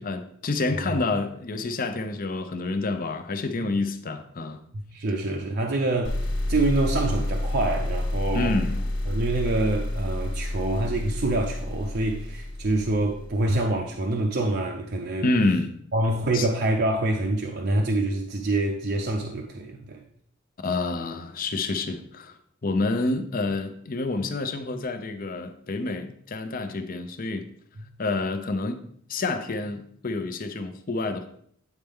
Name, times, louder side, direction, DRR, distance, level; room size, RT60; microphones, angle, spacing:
voice 1, 0.0-4.6 8.3-8.9 15.2-15.7 16.3-16.5 20.6-27.5 28.0-28.8 29.1-31.3, left 3 dB, 45° left, 0.6 m, -28 dB
voice 2, 4.7-6.2 6.5-8.6 9.1-15.3 15.9-20.0, right 2 dB, 50° right, 0.6 m, -26 dB
sound 1, 6.0-13.6, left 1 dB, 65° left, 1.2 m, -29 dB
9.1 x 4.4 x 3.6 m
head